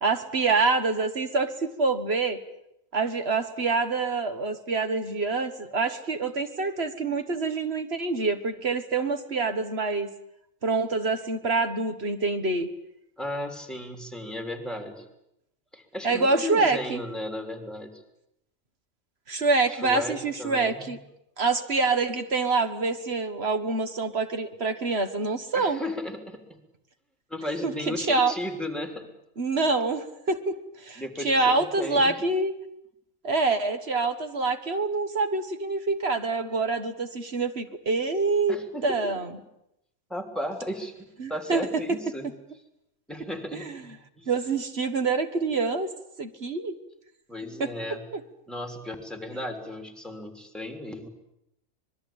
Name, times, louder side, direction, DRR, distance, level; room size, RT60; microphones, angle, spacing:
voice 1, 0.0-2.4 2.9-10.1 10.6-12.7 16.0-17.0 19.3-21.0 21.4-25.8 27.6-28.3 29.4-32.5 33.2-38.6 38.8-39.3 41.2-41.6 43.5-43.8 44.3-45.9 46.2-46.8 47.6-47.7, right 3 dB, 50° right, 9 dB, 1.7 m, -26 dB
voice 2, 13.2-15.0 15.7-18.0 19.7-20.9 25.5-26.6 27.3-29.1 31.0-32.2 38.5-39.1 40.1-40.9 41.3-42.3 43.1-44.3 47.3-48.1 48.5-51.1, left 1 dB, ahead, 5 dB, 3.3 m, -35 dB
25.5 x 21.0 x 8.8 m, 0.81 s
omnidirectional pair, 1.4 m